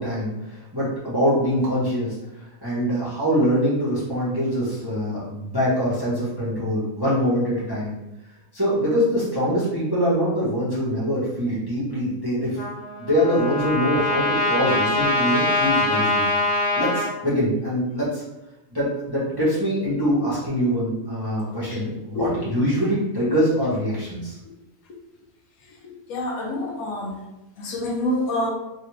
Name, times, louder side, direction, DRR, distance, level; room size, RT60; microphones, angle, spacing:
voice 1, 0.0-2.2 2.6-8.0 8.5-12.6 13.0-16.2 16.8-18.2 18.7-24.4, equal, 20° right, -9 dB, 0.8 m, -23 dB
Trumpet, 12.6-17.1, left 2 dB, 35° left, 1.2 m, -23 dB
voice 2, 25.8-27.2 27.6-28.5, left 1 dB, 80° left, 0 dB, 1.1 m, -27 dB
3.3 x 2.4 x 3.0 m, 0.97 s
omnidirectional pair, 1.5 m